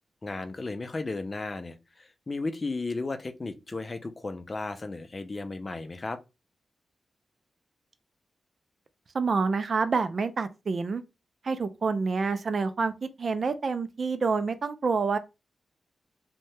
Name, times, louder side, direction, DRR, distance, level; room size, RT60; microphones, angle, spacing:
voice 1, 0.2-6.2, left 3 dB, 40° left, 0.4 m, -34 dB
voice 2, 9.1-11.0 11.4-15.2, right 4 dB, 60° right, 0.3 m, -27 dB
2.7 x 2.1 x 3.1 m
cardioid pair, 65°, 0 cm